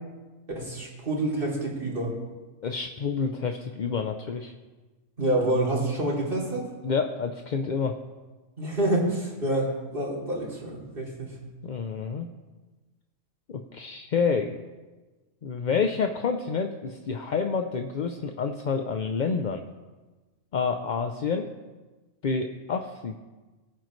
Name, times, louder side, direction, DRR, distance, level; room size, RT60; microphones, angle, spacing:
voice 1, 0.5-2.1 5.2-6.6 8.6-11.4, right 1 dB, 40° right, -4 dB, 3.3 m, -27 dB
voice 2, 2.6-4.5 6.8-7.9 11.6-12.3 13.5-14.6 15.4-19.6 20.5-21.5 22.2-23.2, left 5 dB, 50° left, 5 dB, 0.6 m, -28 dB
21.0 x 9.1 x 3.2 m, 1.3 s
omnidirectional pair, 1.4 m